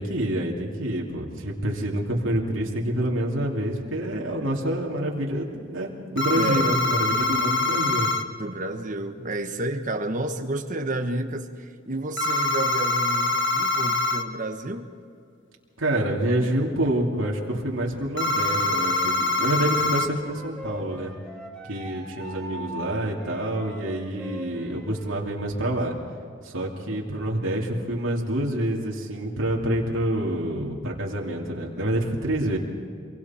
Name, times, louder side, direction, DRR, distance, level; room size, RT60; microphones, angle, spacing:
voice 1, 0.0-8.1 15.8-21.1 21.7-25.9 26.4-32.6, right 1 dB, 75° right, -2 dB, 2.8 m, -27 dB
sound 1, 6.2-8.2 12.2-14.2 18.2-20.1, left 2 dB, 65° left, 1.4 m, -24 dB
voice 2, 6.4-6.7 8.4-14.9, right 2 dB, 40° right, 6 dB, 1.4 m, -30 dB
Wind instrument woodwind instrument, 19.8-25.1, right 1 dB, 5° left, 3.8 m, -41 dB
26.5 x 23.5 x 4.4 m, 2.3 s
head